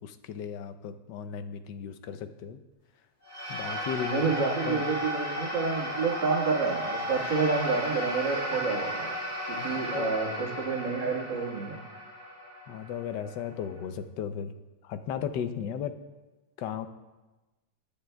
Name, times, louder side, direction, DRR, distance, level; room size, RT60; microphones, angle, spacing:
voice 1, 0.0-2.6 3.5-4.3 4.6-4.8 9.6-10.1 12.7-14.5 14.8-16.0 16.6-16.9, left 8 dB, 80° left, 10 dB, 1.3 m, -35 dB
sound 1, 3.2-13.8, equal, 25° left, 3.4 m, -35 dB
voice 2, 4.1-9.2 9.5-11.8, right 4 dB, 80° right, -2 dB, 2.3 m, -29 dB
19.0 x 10.0 x 2.3 m, 1.1 s
omnidirectional pair, 1.9 m